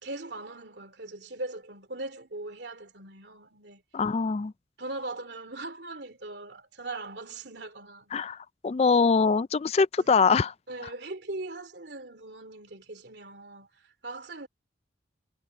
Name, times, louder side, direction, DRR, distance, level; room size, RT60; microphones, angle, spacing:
voice 1, 0.0-3.8 4.8-8.1 10.0-10.1 10.7-14.5, right 2 dB, 70° right, 2.9 m, -40 dB
voice 2, 3.9-4.5 8.1-10.5, left 5 dB, 35° left, 0.3 m, -23 dB
head